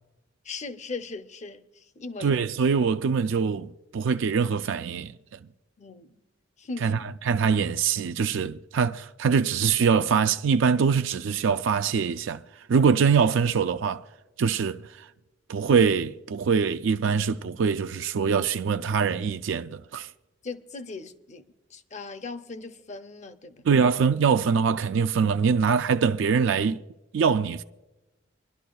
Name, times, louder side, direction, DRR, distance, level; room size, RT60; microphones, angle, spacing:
voice 1, 0.4-2.4 5.8-6.2 6.6-7.0 20.4-21.4 21.7-23.6, left 3 dB, 40° left, 0.7 m, -38 dB
voice 2, 2.2-5.1 6.8-12.4 12.7-14.0 14.4-14.8 15.5-20.1 23.6-26.8 27.1-27.6, right 6 dB, 75° right, 0.4 m, -23 dB
25.5 x 11.5 x 2.3 m
head